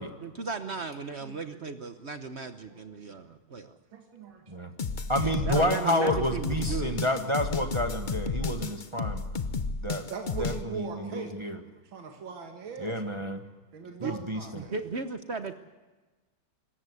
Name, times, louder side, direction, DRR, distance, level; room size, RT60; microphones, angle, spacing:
voice 1, 0.0-3.8 5.4-7.0 14.0-14.1 14.6-15.6, right 4 dB, 50° right, 9 dB, 0.9 m, -36 dB
voice 2, 1.2-1.6 2.7-2.8 3.1-3.2 3.9-4.4 6.0-6.1 6.7-6.8 8.6-8.7 10.0-11.3 11.8-13.0 13.7-14.7, right 5 dB, 70° right, 3 dB, 2.5 m, -41 dB
sound 1, 4.8-10.6, left 4 dB, 85° left, 0.4 m, -32 dB
voice 3, 5.1-9.2 9.8-10.1 10.4-11.6 12.8-13.4 14.0-14.6, equal, 20° right, 5 dB, 1.1 m, -29 dB
25.5 x 14.0 x 8.2 m, 1.2 s
omnidirectional pair, 2.2 m